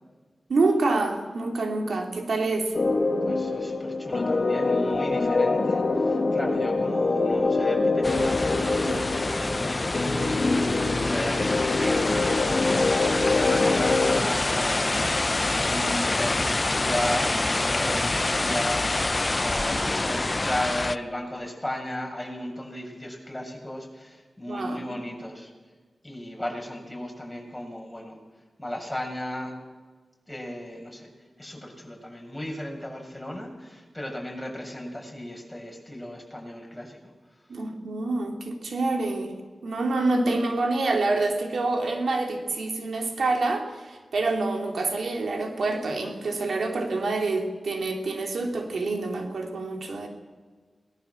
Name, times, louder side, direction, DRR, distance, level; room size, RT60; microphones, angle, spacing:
voice 1, 0.5-2.7 8.9-9.0 15.8-16.0 24.5-25.0 37.5-39.3 39.6-50.1, right 3 dB, 80° right, 3 dB, 3.0 m, -27 dB
sound 1, 2.7-14.2, left 3 dB, 55° left, 1.8 m, -25 dB
voice 2, 3.2-25.5 26.0-28.2 28.6-29.6 30.3-31.1 31.4-37.1, left 1 dB, 10° left, 0 dB, 7.1 m, -35 dB
sound 2, 8.0-21.0, left 2 dB, 40° left, 0.7 m, -26 dB
20.5 x 19.5 x 7.3 m, 1.4 s
cardioid pair, 40°, 0 cm